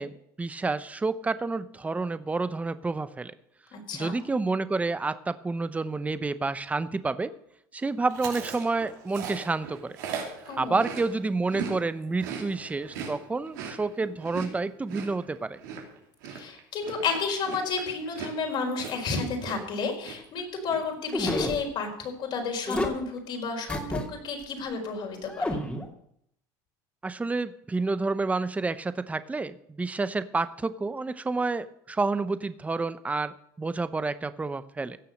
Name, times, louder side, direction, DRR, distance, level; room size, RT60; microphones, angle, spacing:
voice 1, 0.0-3.3 3.9-7.3 7.7-9.9 10.6-15.6 27.0-35.0, right 3 dB, 15° right, 13 dB, 0.8 m, -29 dB
voice 2, 3.7-4.1 10.4-10.8 16.3-25.6, left 4 dB, 55° left, 2 dB, 4.6 m, -31 dB
Chewing mastication, 8.1-11.8 12.0-19.8 20.0-20.4 20.6-21.4, right 6 dB, 85° right, 3.0 m, -39 dB
sound 1, 21.1-21.6 22.7-22.9 23.7-24.0 24.4-24.5 25.3-25.8, left 1 dB, 10° left, 2.6 m, -28 dB
16.5 x 6.9 x 6.4 m, 0.72 s
supercardioid pair, 95°, 10 cm